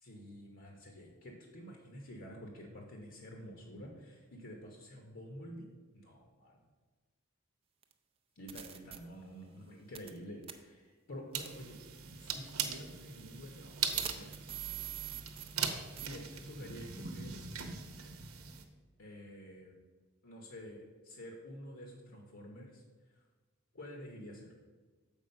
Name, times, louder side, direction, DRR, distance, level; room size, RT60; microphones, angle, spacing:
voice 1, 0.0-5.7 5.9-6.6 8.3-11.8 12.2-14.3 16.0-17.4 19.0-19.8 20.2-22.8 23.1-23.2 23.7-24.5, equal, 65° left, 1 dB, 1.0 m, -49 dB
sound 1, 7.8-7.9 8.5-9.0 9.9-10.2 10.4-10.5 11.4-11.6 12.3-12.4 13.9-15.7 16.0-16.1, right 10 dB, 25° right, 0.4 m, -42 dB
sound 2, 11.3-18.6, right 7 dB, 90° right, 0.8 m, -40 dB
7.2 x 4.9 x 5.3 m, 1.4 s
head